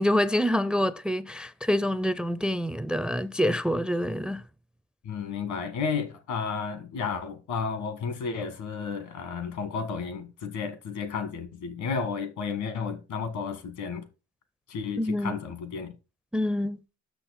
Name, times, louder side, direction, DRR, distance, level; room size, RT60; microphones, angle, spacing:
voice 1, 0.0-4.4 15.0-15.4 16.3-16.8, left 1 dB, 5° right, 0.4 m, -26 dB
voice 2, 5.0-14.1 14.7-16.0, left 5 dB, 80° left, 1.7 m, -32 dB
6.5 x 5.8 x 4.2 m
cardioid pair, 90°, 30 cm